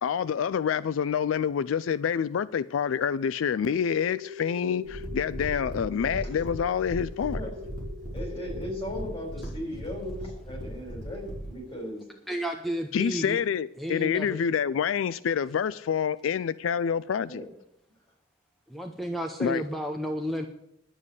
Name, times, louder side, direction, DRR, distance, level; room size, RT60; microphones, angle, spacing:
voice 1, 0.0-7.4 12.9-17.4 19.4-19.6, left 7 dB, 85° left, 0.4 m, -27 dB
sound 1, 3.6-8.6, left 5 dB, 55° right, 1.5 m, -43 dB
voice 2, 4.8-5.2 7.4-7.5 8.1-12.0 17.2-17.5, left 1 dB, 30° left, 4.1 m, -37 dB
sound 2, 4.9-11.5, right 1 dB, 55° left, 3.8 m, -37 dB
voice 3, 12.3-13.4 13.8-14.4 18.7-20.5, equal, ahead, 0.8 m, -32 dB
11.0 x 7.5 x 8.1 m
head